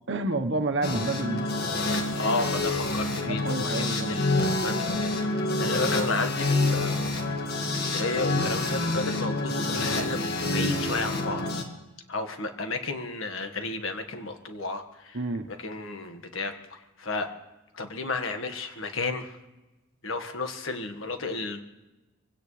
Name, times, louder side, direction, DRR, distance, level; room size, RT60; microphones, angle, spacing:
voice 1, 0.1-1.5 3.3-4.1 15.1-15.5, right 2 dB, 60° right, 7 dB, 1.2 m, -29 dB
sound 1, 0.8-11.6, left 2 dB, 50° left, 2.0 m, -27 dB
voice 2, 1.9-11.4 12.1-15.2 15.5-17.3 17.7-19.4 20.0-21.6, left 3 dB, 70° left, 7 dB, 1.7 m, -33 dB
24.0 x 17.0 x 3.3 m, 1.1 s
head